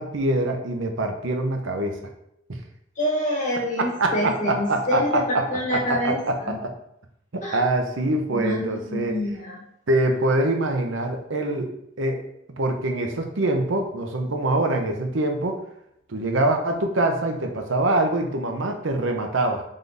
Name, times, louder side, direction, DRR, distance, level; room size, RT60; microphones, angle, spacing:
voice 1, 0.0-2.0 2.5-2.6 4.0-6.7 7.5-9.1 9.9-12.3 12.6-15.6 16.1-19.6, right 2 dB, 75° right, 4 dB, 0.7 m, -24 dB
voice 2, 3.0-6.6 7.4-7.6 8.3-9.7, left 1 dB, 40° left, -3 dB, 1.3 m, -27 dB
3.9 x 3.7 x 3.4 m, 0.77 s
head